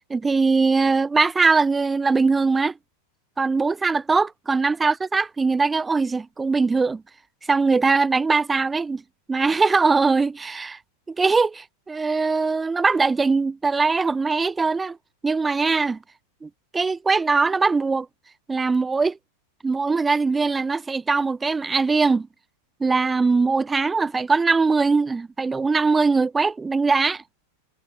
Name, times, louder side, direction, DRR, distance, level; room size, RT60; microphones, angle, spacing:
voice 1, 0.1-2.7 3.4-7.0 7.5-9.0 9.3-10.8 11.1-15.0 15.2-16.0 16.4-18.1 18.5-19.2 19.6-22.3 22.8-27.2, right 4 dB, 10° right, 0.7 m, -21 dB
figure-of-eight pair, 90°, 0 cm